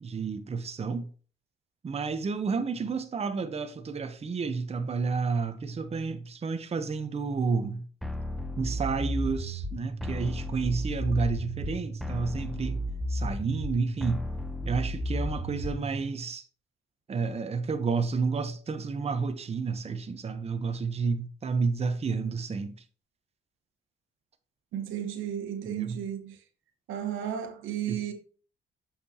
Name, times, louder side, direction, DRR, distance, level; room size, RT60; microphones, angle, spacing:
voice 1, 0.0-1.1 1.8-7.9 8.6-12.8 13.1-14.2 14.7-16.4 17.1-22.8 25.6-26.0 27.9-28.0, right 4 dB, 30° right, 0.8 m, -30 dB
sound 1, 8.0-16.0, equal, ahead, 0.7 m, -33 dB
voice 2, 24.7-26.4 26.9-28.1, right 10 dB, 85° right, 1.3 m, -33 dB
6.6 x 5.7 x 2.8 m
cardioid pair, 90°, 20 cm